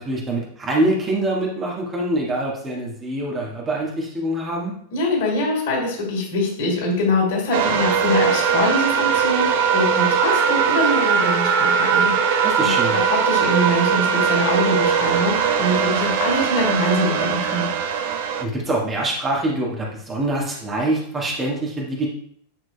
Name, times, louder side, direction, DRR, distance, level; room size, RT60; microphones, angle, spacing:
voice 1, 0.0-4.7 12.4-13.0 18.4-22.1, right 1 dB, 20° right, -2 dB, 1.5 m, -24 dB
voice 2, 4.9-17.7, left 1 dB, 55° left, -2 dB, 2.5 m, -23 dB
sound 1, 7.5-18.4, right 7 dB, 50° right, 0.6 m, -20 dB
9.0 x 4.7 x 2.2 m, 0.64 s
figure-of-eight pair, 90°, 0 cm